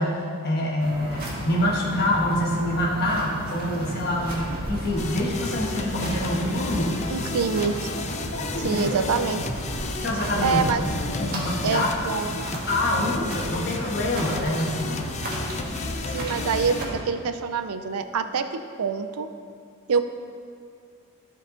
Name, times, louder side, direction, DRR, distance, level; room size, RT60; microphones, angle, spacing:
voice 1, 0.0-7.3 8.3-9.0 10.0-10.7 11.1-11.9 12.2-12.3 12.7-15.0, left 1 dB, 45° left, -2 dB, 1.4 m, -26 dB
sound 1, 0.8-16.8, right 1 dB, 45° right, 1.5 m, -34 dB
sound 2, 5.0-16.8, left 4 dB, 30° left, 0.4 m, -33 dB
voice 2, 7.1-7.8 8.6-9.4 10.4-10.8 11.6-12.4 16.1-19.3 19.9-20.1, right 5 dB, 90° right, 9 dB, 0.5 m, -25 dB
13.5 x 4.7 x 3.8 m, 2.4 s
head